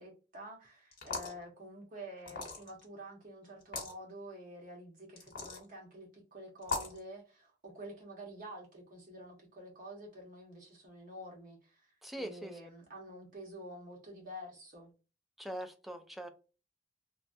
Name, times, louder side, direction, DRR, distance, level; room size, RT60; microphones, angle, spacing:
voice 1, 0.0-11.9 12.1-14.9, equal, 50° right, 1.2 m, -49 dB
sound 1, 0.9-1.4 2.3-2.8 3.6-3.9 5.2-5.6 6.6-7.0, left 3 dB, 55° left, 1.2 m, -38 dB
voice 2, 12.0-12.6 15.4-16.3, right 1 dB, ahead, 0.3 m, -42 dB
3.1 x 2.3 x 2.6 m
head